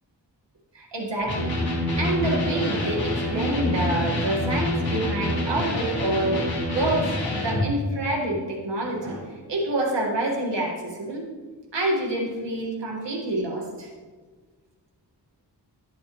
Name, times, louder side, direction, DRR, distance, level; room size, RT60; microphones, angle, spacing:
voice 1, 0.7-1.5 2.0-6.4 6.7-11.2 11.7-13.9, right 1 dB, 85° right, -1 dB, 1.8 m, -27 dB
Electric guitar, 1.2-7.7, left 1 dB, 60° left, 1.9 m, -26 dB
11.5 x 7.0 x 3.1 m, 1.4 s
cardioid pair, 45°, 41 cm